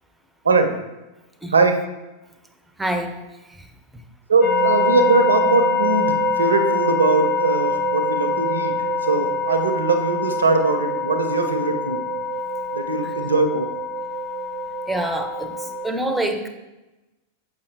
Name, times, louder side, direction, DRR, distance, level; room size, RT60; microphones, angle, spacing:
voice 1, 2.8-3.2 13.0-13.1 14.9-16.5, right 1 dB, 5° right, 6 dB, 0.6 m, -26 dB
voice 2, 4.3-8.8 9.0-12.1 12.7-13.7, right 3 dB, 70° right, 7 dB, 0.6 m, -21 dB
sound 1, 4.4-15.9, left 2 dB, 40° left, 1.0 m, -24 dB
6.8 x 5.2 x 2.6 m, 1.1 s
figure-of-eight pair, 90°, 0 cm